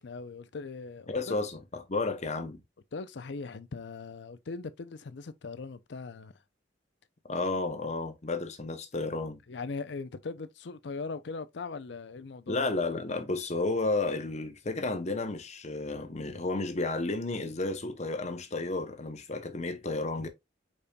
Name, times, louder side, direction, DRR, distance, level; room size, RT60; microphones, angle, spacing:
voice 1, 0.0-1.4 2.9-6.3 9.5-12.7, left 4 dB, 65° left, 0.5 m, -40 dB
voice 2, 1.1-2.6 7.3-9.4 12.5-20.3, left 3 dB, 40° left, 0.8 m, -32 dB
5.1 x 4.2 x 2.3 m
head